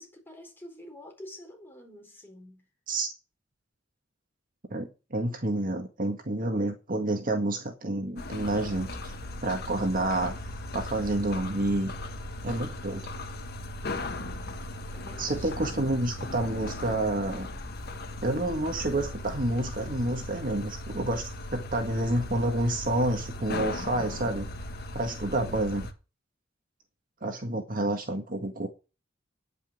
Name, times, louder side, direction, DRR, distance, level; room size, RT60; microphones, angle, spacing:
voice 1, 0.0-2.6 13.8-16.0, left 1 dB, 10° left, 4.1 m, -49 dB
voice 2, 4.7-9.1 9.4-10.4 10.7-11.9 12.4-13.1 15.2-17.5 18.2-21.2 21.5-24.5 24.9-25.9 27.2-28.7, right 1 dB, 45° right, 1.8 m, -29 dB
sound 1, 8.2-25.9, left 1 dB, 55° left, 1.3 m, -38 dB
10.0 x 5.8 x 8.6 m
head